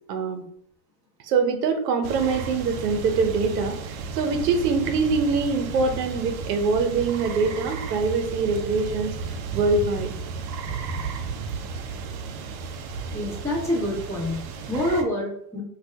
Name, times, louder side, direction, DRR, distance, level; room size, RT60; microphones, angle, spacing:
voice 1, 0.1-0.4 1.2-3.8 4.1-9.1 9.5-10.1, right 4 dB, 85° right, 6 dB, 0.7 m, -24 dB
sound 1, 2.0-15.0, right 5 dB, 45° right, 0.5 m, -34 dB
voice 2, 13.1-15.6, left 1 dB, 5° left, -6 dB, 1.1 m, -27 dB
2.6 x 2.3 x 3.4 m, 0.67 s
supercardioid pair, 120°, 47 cm